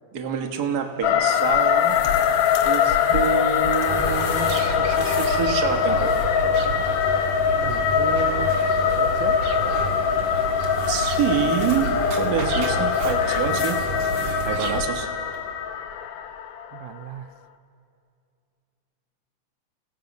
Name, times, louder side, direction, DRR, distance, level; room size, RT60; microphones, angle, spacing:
voice 1, 0.1-2.0 2.6-6.2 10.9-11.9 12.2-13.8 14.4-15.1, right 8 dB, 45° right, 3 dB, 1.4 m, -27 dB
sound 1, 1.0-17.0, left 8 dB, 75° left, 1.4 m, -22 dB
sound 2, 1.3-5.5 5.8-6.5 10.2-11.9 12.7-14.5 15.3-15.4, left 5 dB, 50° left, 2.3 m, -40 dB
sound 3, 3.9-14.8, right 5 dB, 65° right, 2.0 m, -31 dB
voice 2, 7.6-8.5 9.0-9.4 16.7-17.3, right 13 dB, 85° right, 12 dB, 2.1 m, -34 dB
29.5 x 17.0 x 5.3 m, 2.5 s
omnidirectional pair, 3.5 m